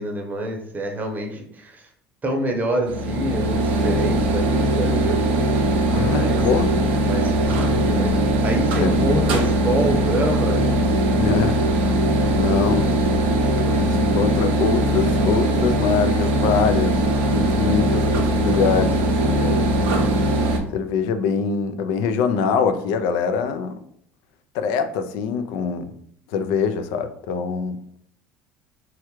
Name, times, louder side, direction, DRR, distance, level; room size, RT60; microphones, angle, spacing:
voice 1, 0.0-1.9 2.2-5.6 5.9-6.4 7.0-8.1 8.4-10.6 13.6-13.8, right 1 dB, 30° right, 3 dB, 0.7 m, -27 dB
sound 1, 2.9-20.6, right 1 dB, 90° right, 0.5 m, -20 dB
voice 2, 5.9-6.9 8.8-9.1 11.1-11.6 12.3-12.9 13.5-19.0 19.2-19.6 20.7-23.8 24.5-25.9 26.3-27.8, left 6 dB, 75° left, 9 dB, 0.3 m, -24 dB
3.3 x 2.3 x 3.0 m, 0.67 s
supercardioid pair, 85°, 6 cm